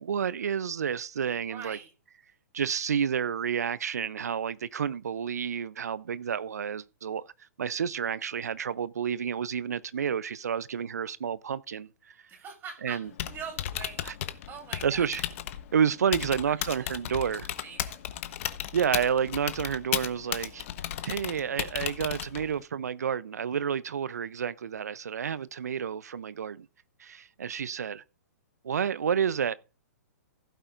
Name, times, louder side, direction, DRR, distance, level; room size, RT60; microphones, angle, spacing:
voice 1, 0.0-1.8 2.5-7.3 7.6-12.2 12.8-13.1 14.0-14.1 14.8-15.2 15.7-17.5 18.7-20.7 21.0-26.7 27.0-28.0 28.6-29.6, right 7 dB, 70° right, 0.7 m, -30 dB
voice 2, 1.3-1.9 12.3-15.1 16.3-16.9 17.4-18.0, right 6 dB, 25° right, 3.7 m, -44 dB
Typing, 13.0-22.6, left 12 dB, 50° left, 1.1 m, -35 dB
15.5 x 9.0 x 2.6 m
figure-of-eight pair, 120°, 9 cm